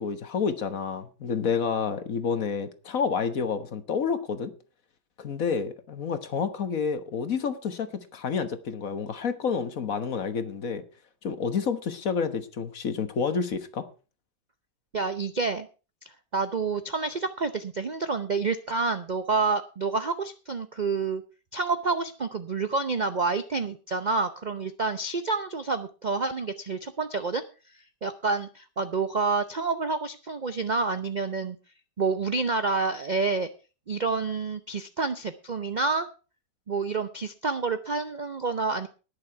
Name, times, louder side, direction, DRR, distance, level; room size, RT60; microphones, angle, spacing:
voice 1, 0.0-4.5 5.2-10.8 11.2-13.9, left 6 dB, 55° left, 1.6 m, -29 dB
voice 2, 14.9-15.7 16.3-21.2 21.5-27.4 28.0-31.6 32.0-33.5 33.9-36.1 36.7-38.9, right 4 dB, 50° right, 0.5 m, -28 dB
19.5 x 6.9 x 4.6 m
omnidirectional pair, 1.8 m